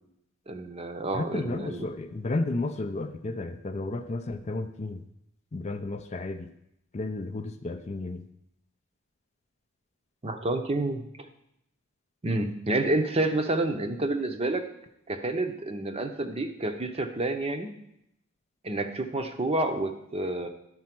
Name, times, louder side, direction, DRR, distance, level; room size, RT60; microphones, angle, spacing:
voice 1, 0.5-1.9 10.2-11.0 12.2-14.6 15.1-17.7 18.6-20.5, right 2 dB, 30° right, 7 dB, 0.7 m, -29 dB
voice 2, 1.1-5.0 5.5-6.5 6.9-8.3, left 2 dB, 30° left, 8 dB, 0.5 m, -32 dB
11.0 x 4.2 x 5.9 m, 0.78 s
head